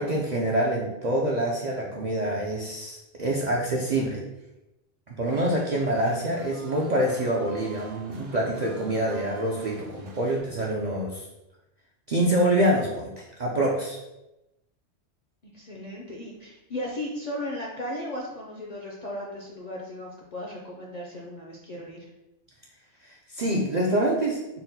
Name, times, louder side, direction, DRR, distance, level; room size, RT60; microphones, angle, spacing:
voice 1, 0.0-4.2 5.1-11.2 12.1-14.0 23.0-24.4, right 1 dB, 55° right, -3 dB, 0.4 m, -26 dB
sound 1, 5.3-10.4, right 3 dB, 85° right, 1.1 m, -45 dB
voice 2, 15.5-22.1, left 1 dB, 55° left, -2 dB, 0.4 m, -36 dB
4.1 x 2.1 x 4.0 m, 0.94 s
omnidirectional pair, 1.3 m